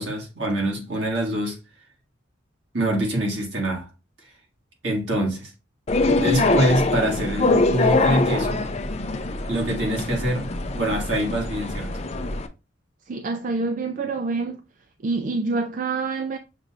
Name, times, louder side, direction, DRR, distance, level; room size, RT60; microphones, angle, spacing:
voice 1, 0.0-1.6 2.7-3.9 4.8-5.5 6.1-8.6 9.5-10.5 10.8-12.0, right 1 dB, 65° right, 1.8 m, -25 dB
sound 1, 5.9-12.5, left 2 dB, 35° left, 0.5 m, -23 dB
voice 2, 13.1-14.6 15.0-16.4, right 3 dB, 40° right, 0.4 m, -26 dB
6.6 x 3.0 x 2.5 m
head